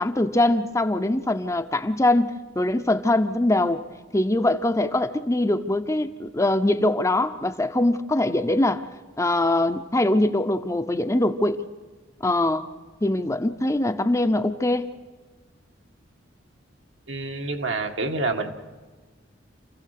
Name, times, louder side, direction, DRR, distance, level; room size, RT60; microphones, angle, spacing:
voice 1, 0.0-3.8 4.1-8.9 9.2-11.6 12.2-12.7 13.0-14.9, left 1 dB, 15° left, 9 dB, 0.7 m, -22 dB
voice 2, 17.1-18.5, right 3 dB, 75° right, 4 dB, 1.8 m, -27 dB
28.0 x 16.0 x 6.6 m, 1.4 s
head